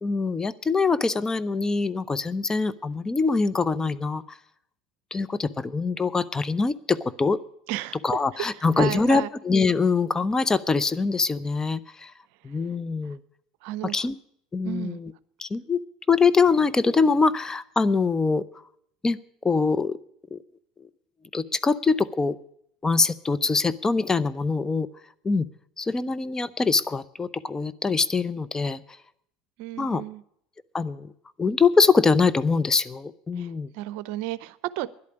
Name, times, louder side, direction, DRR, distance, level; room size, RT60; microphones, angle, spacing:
voice 1, 0.0-4.2 5.1-7.4 8.0-12.1 12.4-13.2 13.8-14.2 14.5-15.1 15.4-15.8 16.1-18.4 19.0-19.2 19.4-20.0 20.3-20.4 21.3-22.4 22.8-24.9 25.2-25.5 25.8-28.8 29.8-30.0 30.7-31.1 31.4-33.7, left 4 dB, 20° left, 15 dB, 0.7 m, -23 dB
voice 2, 8.8-9.3 13.6-13.9 14.6-15.0 29.6-30.2 33.4-33.5 33.7-34.9, right 16 dB, 65° right, 17 dB, 0.6 m, -32 dB
11.0 x 8.4 x 9.9 m, 0.69 s
hypercardioid pair, 80°, 3 cm